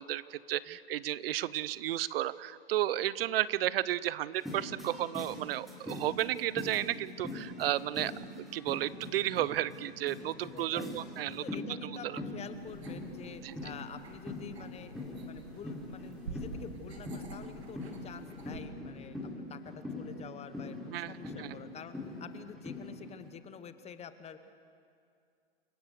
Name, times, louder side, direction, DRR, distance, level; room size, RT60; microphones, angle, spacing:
voice 1, 0.0-8.1 8.4-11.4 11.9-12.2 13.4-13.6 20.9-21.1 21.4-21.5, right 13 dB, 65° right, 19 dB, 0.8 m, -33 dB
sound 1, 4.3-23.3, left 2 dB, ahead, 3.6 m, -43 dB
voice 2, 10.2-11.0 11.3-24.5, left 7 dB, 20° left, 11 dB, 1.0 m, -48 dB
sound 2, 12.5-18.6, right 5 dB, 85° right, 2.8 m, -49 dB
28.5 x 16.5 x 6.5 m, 2.4 s
hypercardioid pair, 115°, 31 cm